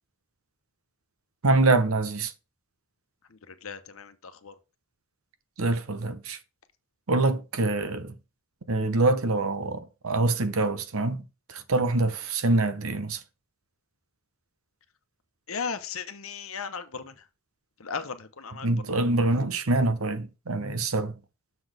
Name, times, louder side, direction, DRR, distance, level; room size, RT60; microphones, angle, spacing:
voice 1, 1.4-2.3 5.6-6.4 7.1-8.1 8.7-11.2 11.5-13.2 18.6-21.1, right 2 dB, 90° right, 0.9 m, -25 dB
voice 2, 3.3-4.5 15.5-17.3 17.8-19.0, left 5 dB, 85° left, 1.0 m, -37 dB
6.8 x 4.1 x 6.5 m
head